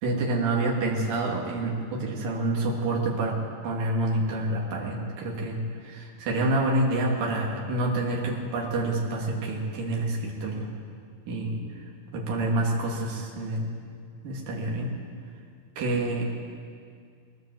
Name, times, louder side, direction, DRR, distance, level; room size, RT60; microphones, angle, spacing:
voice 1, 0.0-3.4 3.6-10.7 11.3-11.6 12.1-13.7 14.2-14.9 15.8-16.2, right 2 dB, 65° right, -2 dB, 4.1 m, -27 dB
20.5 x 16.5 x 7.8 m, 2.2 s
omnidirectional pair, 4.2 m